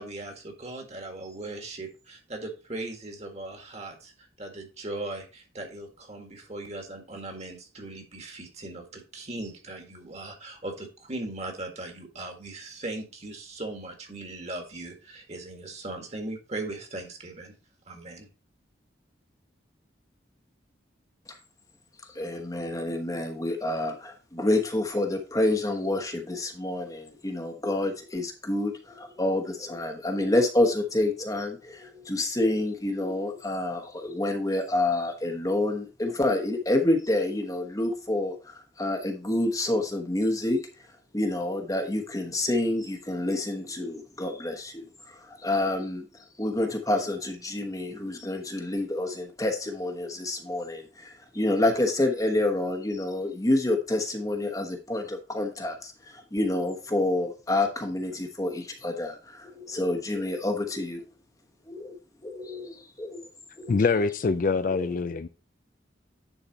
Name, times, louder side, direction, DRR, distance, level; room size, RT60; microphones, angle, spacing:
voice 1, 0.0-4.1 4.4-17.5 17.9-18.3, right 2 dB, 35° right, 1.8 m, -38 dB
voice 2, 22.1-40.6 41.1-61.0 61.7-61.9 62.2-63.2 63.6-63.8 64.7-64.9, left 1 dB, 20° left, 1.0 m, -28 dB
voice 3, 63.7-65.3, left 4 dB, 45° left, 0.4 m, -24 dB
9.9 x 4.2 x 4.1 m
head